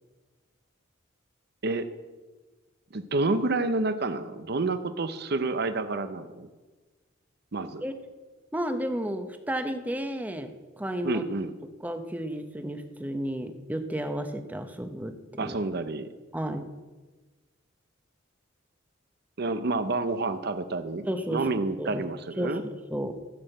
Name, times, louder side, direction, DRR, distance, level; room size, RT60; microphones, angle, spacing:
voice 1, 2.9-6.5 7.5-7.8 11.0-11.5 15.4-16.1 19.4-22.6, right 3 dB, 55° right, 10 dB, 0.7 m, -29 dB
voice 2, 8.5-11.2 11.8-15.1 15.4-15.6 16.3-16.7 21.1-21.5 21.8-22.0 22.4-23.1, equal, 10° right, 7 dB, 0.8 m, -32 dB
14.5 x 6.5 x 7.9 m, 1.3 s
head